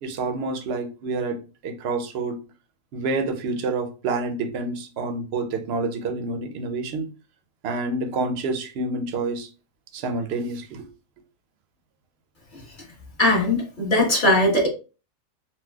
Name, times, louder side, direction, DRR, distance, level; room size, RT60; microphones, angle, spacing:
voice 1, 0.0-2.4 2.9-7.1 7.6-9.5 9.9-10.9, right 3 dB, 60° right, 0.7 m, -28 dB
voice 2, 13.2-14.7, left 1 dB, 35° left, 1.3 m, -19 dB
4.2 x 2.2 x 2.3 m
omnidirectional pair, 1.4 m